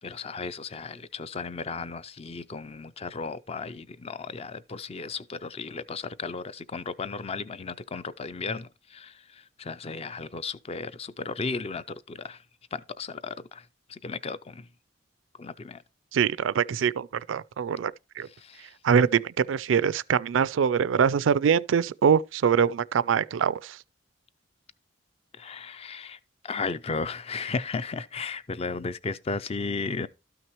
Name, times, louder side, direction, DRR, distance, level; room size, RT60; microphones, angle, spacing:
voice 1, 0.0-12.4 12.7-14.7 15.4-15.8 18.4-18.7 25.3-26.2 26.4-30.1, left 4 dB, 30° left, 0.4 m, -35 dB
voice 2, 16.1-18.3 18.8-23.8, right 7 dB, 80° right, 0.4 m, -24 dB
12.5 x 6.0 x 3.0 m
head